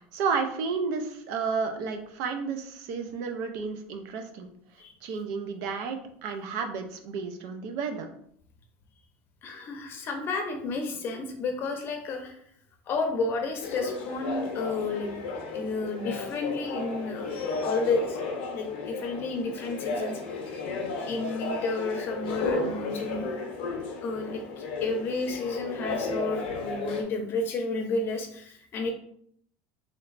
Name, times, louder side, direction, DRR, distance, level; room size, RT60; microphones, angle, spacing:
voice 1, 0.1-4.5 5.0-8.1, right 5 dB, 65° right, 6 dB, 0.5 m, -32 dB
voice 2, 9.4-12.4 12.9-15.1 15.5-17.3 17.6-18.2 18.5-20.2 21.1-23.3 24.0-28.9, left 3 dB, 40° left, 3 dB, 0.7 m, -31 dB
sound 1, 13.6-27.0, left 3 dB, 85° left, 0.6 m, -33 dB
3.2 x 3.0 x 2.5 m, 0.66 s
supercardioid pair, 135°, 6 cm